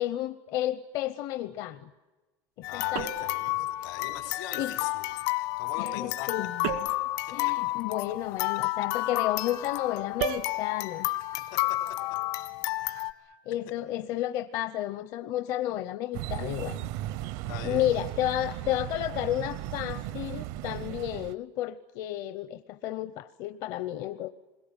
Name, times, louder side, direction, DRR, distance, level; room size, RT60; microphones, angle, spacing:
voice 1, 0.0-1.9 2.6-3.3 3.8-4.0 4.6-4.8 5.8-6.9 7.3-11.1 13.5-16.9 17.6-24.3, left 13 dB, 50° left, 10 dB, 0.8 m, -32 dB
sound 1, 2.6-13.1, left 18 dB, 70° left, 1.8 m, -31 dB
voice 2, 2.7-5.1 5.6-6.3 12.8-13.0 17.5-17.9, left 9 dB, 90° left, 7 dB, 4.7 m, -41 dB
sound 2, 2.9-3.4 6.6-7.1 10.2-10.5, right 9 dB, 85° right, 2.1 m, -32 dB
sound 3, 16.1-21.3, right 14 dB, 65° right, 0.8 m, -36 dB
28.0 x 22.0 x 9.0 m, 1.2 s
cardioid pair, 175°, 8 cm